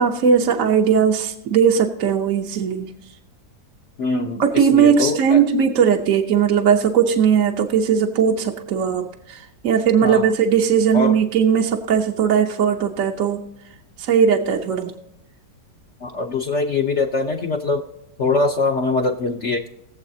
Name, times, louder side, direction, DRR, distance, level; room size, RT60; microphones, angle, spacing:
voice 1, 0.0-2.9 4.4-13.4 14.0-14.9, right 7 dB, 55° right, 2 dB, 1.1 m, -18 dB
voice 2, 4.0-5.4 10.0-10.3 10.9-11.2 16.0-17.8 18.2-19.7, left 3 dB, 50° left, 2 dB, 0.9 m, -22 dB
21.0 x 7.5 x 2.7 m, 0.83 s
omnidirectional pair, 1.8 m